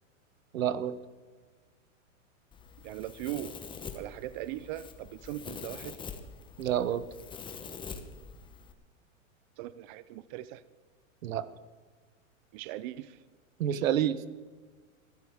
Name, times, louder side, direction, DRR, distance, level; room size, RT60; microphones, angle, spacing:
voice 1, 0.5-0.9 6.6-7.0 11.2-11.5 13.6-14.3, right 10 dB, 80° right, 15 dB, 1.0 m, -28 dB
Domestic sounds home sounds, 2.5-8.7, left 5 dB, 10° left, 0.9 m, -45 dB
voice 2, 2.8-3.6 3.9-6.0 9.6-10.6 12.5-13.2, right 14 dB, 40° right, 16 dB, 0.5 m, -39 dB
20.5 x 14.5 x 3.6 m, 1.4 s
hypercardioid pair, 135°, 40 cm